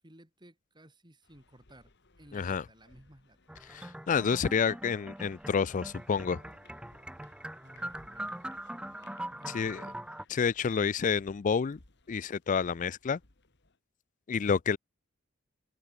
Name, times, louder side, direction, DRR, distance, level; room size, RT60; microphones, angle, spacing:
voice 1, 0.0-3.4 7.5-8.4 9.3-10.0, right 1 dB, 20° right, 4.2 m, -57 dB
sound 1, 1.2-13.8, left 3 dB, 55° left, 2.2 m, -62 dB
voice 2, 2.3-2.6 3.7-6.4 9.5-9.9 10.3-11.8 12.1-13.2 14.3-14.8, left 6 dB, 40° left, 0.4 m, -29 dB
sound 2, 3.5-10.2, right 1 dB, 5° right, 0.7 m, -42 dB
head